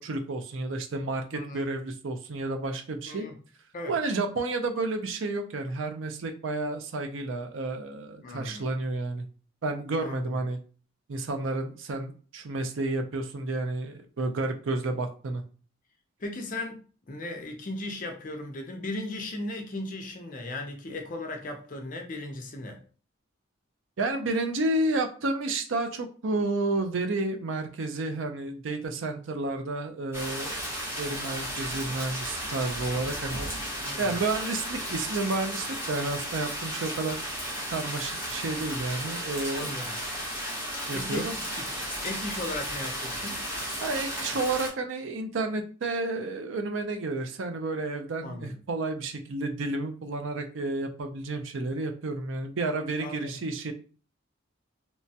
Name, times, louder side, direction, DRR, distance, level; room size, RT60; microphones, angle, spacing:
voice 1, 0.0-3.3 3.9-9.3 9.6-10.6 11.1-15.4 24.0-30.6 31.0-33.6 34.0-37.2 37.7-39.7 40.9-41.3 43.8-53.7, right 2 dB, 70° right, 0.5 m, -31 dB
voice 2, 1.3-1.7 3.0-3.3 3.7-4.0 8.2-8.7 10.0-10.4 16.2-16.8 17.1-22.8 33.8-34.2 39.5-40.0 40.9-41.3 42.0-43.4 48.2-48.6 53.0-53.4, left 2 dB, 40° left, 0.5 m, -37 dB
sound 1, 30.1-44.7, equal, 10° right, 0.9 m, -34 dB
3.0 x 2.2 x 2.7 m
head